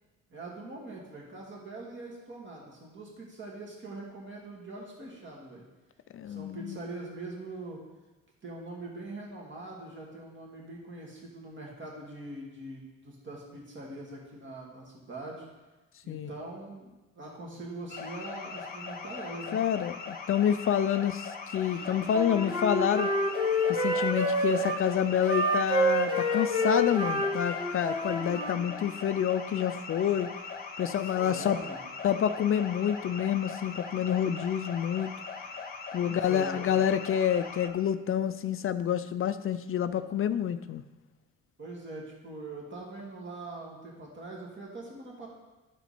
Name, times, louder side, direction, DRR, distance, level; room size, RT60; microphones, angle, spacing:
voice 1, 0.3-5.6 6.2-7.8 8.4-15.5 16.0-19.6 31.0-31.9 36.0-36.7 41.6-45.3, right 2 dB, 40° right, -2 dB, 2.1 m, -43 dB
voice 2, 6.1-6.8 16.1-16.3 19.5-23.1 23.7-30.3 30.8-31.6 32.0-35.1 35.9-40.8, left 9 dB, 45° left, 12 dB, 0.4 m, -28 dB
sound 1, 17.9-37.7, left 5 dB, 30° left, 1.0 m, -41 dB
Wind instrument woodwind instrument, 21.8-24.8 25.2-28.6, equal, 15° right, 1.7 m, -28 dB
13.0 x 4.4 x 4.2 m, 1.1 s
cardioid pair, 90°, 30 cm